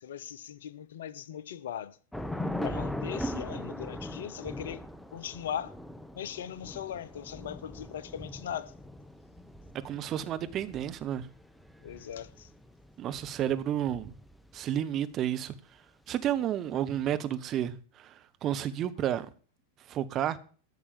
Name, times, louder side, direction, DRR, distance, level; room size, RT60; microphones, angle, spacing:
voice 1, 0.0-2.0 2.6-4.8 5.1-5.7 6.1-8.7 11.8-12.5, left 9 dB, 60° left, 0.9 m, -39 dB
Thunder / Rain, 2.1-14.6, left 1 dB, 5° left, 1.0 m, -40 dB
voice 2, 9.8-11.3 13.0-14.1 14.5-15.5 16.1-19.3 19.9-20.4, right 10 dB, 30° right, 1.2 m, -31 dB
13.5 x 6.8 x 7.3 m
figure-of-eight pair, 90°, 0 cm